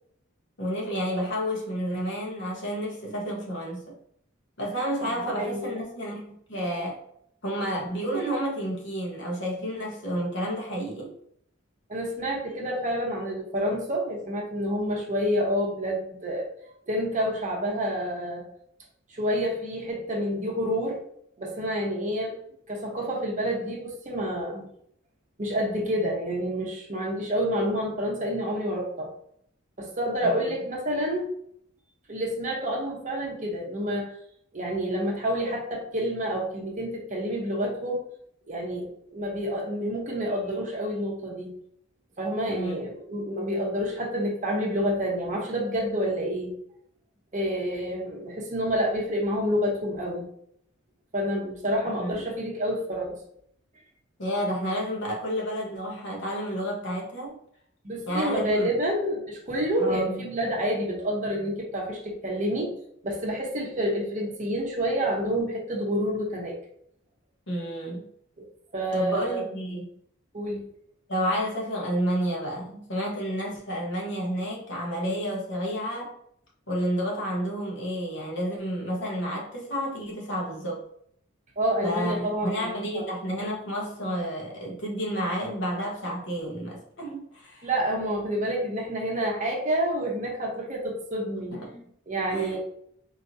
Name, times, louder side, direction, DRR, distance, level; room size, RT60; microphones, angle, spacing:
voice 1, 0.6-3.9 4.6-7.0 7.4-11.1 30.2-30.5 42.4-42.9 52.0-52.2 54.2-57.4 58.1-58.7 59.8-60.2 67.5-68.1 68.9-69.9 71.1-76.1 76.7-80.8 81.8-87.7 91.5-91.9 92.3-92.6, equal, 65° left, -2 dB, 1.2 m, -30 dB
voice 2, 5.1-5.8 11.9-16.5 16.9-18.5 19.1-21.0 21.4-22.4 22.7-24.7 25.4-29.1 29.8-31.3 32.1-34.1 34.5-38.0 38.5-41.5 42.2-46.5 47.3-50.3 51.1-53.2 57.8-62.7 63.0-66.5 68.4-68.5 68.7-69.4 70.3-70.6 81.6-83.4 87.6-91.6 92.1-92.6, equal, 40° right, -1 dB, 1.0 m, -28 dB
4.6 x 3.0 x 2.7 m, 0.69 s
head